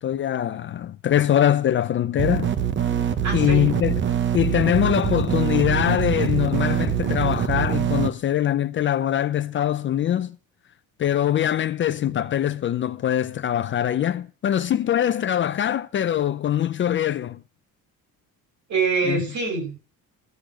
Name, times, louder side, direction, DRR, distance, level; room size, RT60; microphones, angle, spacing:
voice 1, 0.0-2.5 3.3-4.0 4.3-10.4 11.0-17.4 19.0-19.2, left 11 dB, 35° left, 0.5 m, -23 dB
sound 1, 2.2-8.1, right 9 dB, 35° right, 0.8 m, -24 dB
voice 2, 3.2-3.6 18.7-19.8, right 4 dB, 55° right, 7.3 m, -25 dB
14.0 x 6.5 x 6.3 m
cardioid pair, 165°, 34 cm